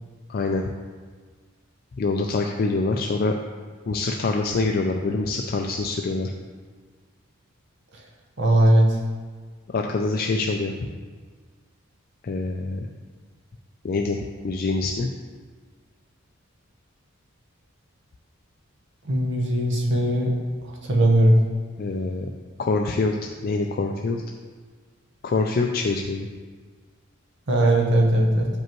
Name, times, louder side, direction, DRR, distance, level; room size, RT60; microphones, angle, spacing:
voice 1, 0.3-0.6 2.0-3.4 3.9-6.3 9.7-10.7 12.2-12.9 13.8-14.2 14.4-15.1 21.8-22.3 22.6-23.2 23.4-24.2 25.2-26.3, left 3 dB, 45° left, 3 dB, 0.3 m, -25 dB
voice 2, 8.4-9.0 19.0-20.3 20.6-21.4 27.5-28.5, right 1 dB, 55° right, -1 dB, 1.0 m, -19 dB
8.9 x 5.3 x 3.0 m, 1.5 s
head